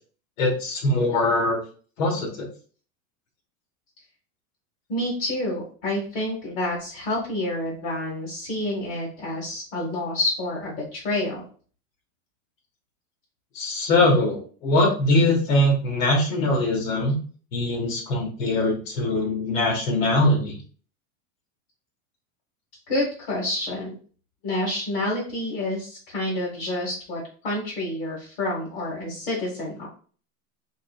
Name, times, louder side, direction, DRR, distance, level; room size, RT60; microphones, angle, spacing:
voice 1, 0.4-1.6 2.0-2.5 13.5-17.2 17.5-20.6, left 1 dB, 75° left, 0 dB, 1.4 m, -22 dB
voice 2, 4.9-11.4 22.9-23.9 24.4-29.9, left 1 dB, 50° left, -2 dB, 1.1 m, -28 dB
3.7 x 3.0 x 2.3 m, 0.41 s
supercardioid pair, 175°, 40 cm